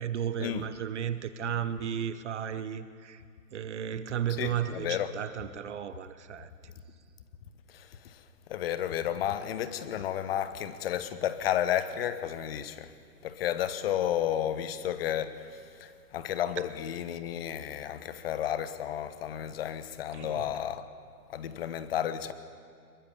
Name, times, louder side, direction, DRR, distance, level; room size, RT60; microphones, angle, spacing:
voice 1, 0.0-3.2 3.5-6.7 20.1-20.6, right 9 dB, 45° right, 1.0 m, -34 dB
voice 2, 4.4-5.1 7.7-8.2 8.5-12.9 13.2-20.9 21.3-22.3, left 10 dB, 35° left, 1.2 m, -32 dB
23.0 x 22.0 x 6.9 m
hypercardioid pair, 140°, 48 cm